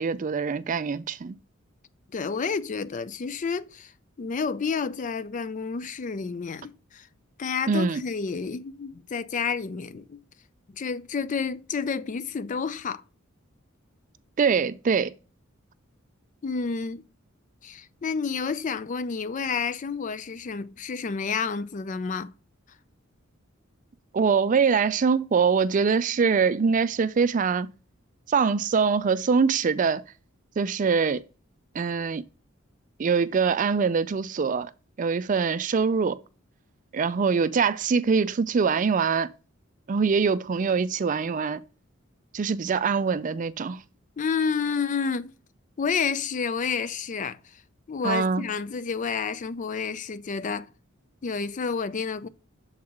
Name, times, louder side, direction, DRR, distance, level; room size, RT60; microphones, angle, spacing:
voice 1, 0.0-1.4 7.7-8.0 14.4-15.1 24.1-27.7 28.3-30.0 30.6-31.2 31.7-32.2 33.0-34.7 35.0-36.2 36.9-39.3 39.9-41.6 42.3-43.8 48.0-48.5, right 5 dB, 40° right, 0.4 m, -23 dB
voice 2, 2.1-3.9 4.2-7.1 7.4-10.2 10.7-13.0 16.4-17.0 17.6-22.3 44.2-45.3 45.8-47.6 47.9-50.7 51.2-52.3, left 5 dB, 40° left, 0.4 m, -30 dB
7.2 x 4.6 x 3.6 m
head